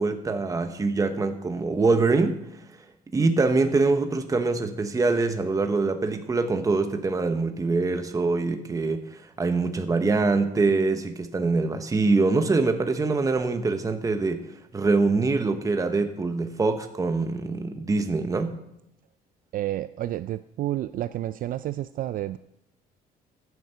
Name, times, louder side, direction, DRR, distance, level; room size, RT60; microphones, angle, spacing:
voice 1, 0.0-2.4 3.1-14.4 14.7-18.6, right 3 dB, 20° right, 7 dB, 1.0 m, -24 dB
voice 2, 19.5-22.4, right 13 dB, 55° right, 14 dB, 0.4 m, -30 dB
14.0 x 8.1 x 5.7 m, 0.83 s
cardioid pair, 110°, 17 cm